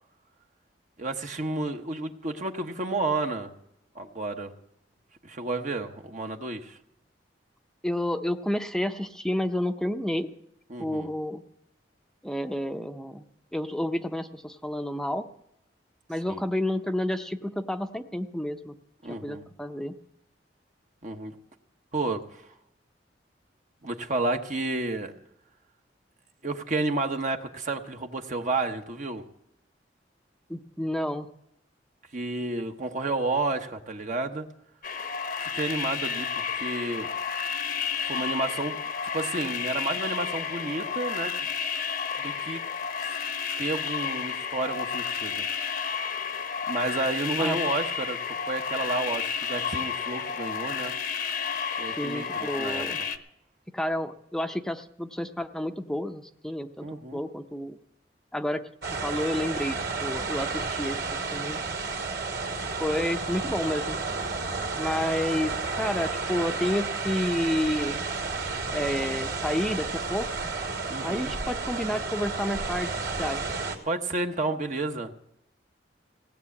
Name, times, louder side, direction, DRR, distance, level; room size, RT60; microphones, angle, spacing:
voice 1, 1.0-3.5 3.9-4.5 5.2-6.8 10.7-11.1 16.3-16.4 19.0-19.4 21.0-21.4 21.9-22.5 23.8-25.1 26.4-29.2 32.1-34.5 35.4-37.1 38.1-38.8 39.1-41.5 42.2-42.6 43.6-45.4 46.7-50.9 51.8-52.8 56.8-57.2 70.9-71.3 73.8-75.1, right 2 dB, 45° right, 5 dB, 1.0 m, -31 dB
voice 2, 7.8-10.3 10.8-11.4 12.2-13.3 13.5-15.3 16.1-18.7 19.1-19.9 30.5-31.3 47.4-47.6 51.8-53.0 53.7-56.9 57.1-57.8 58.3-58.7 59.0-61.0 61.3-61.6 62.8-64.0 64.8-68.0 68.7-70.3 71.0-73.6, left 1 dB, 5° left, 7 dB, 0.7 m, -30 dB
sound 1, 34.8-53.2, left 6 dB, 55° left, 0.9 m, -31 dB
sound 2, 58.8-73.8, right 4 dB, 75° right, 2.6 m, -32 dB
17.5 x 6.8 x 8.5 m, 0.80 s
head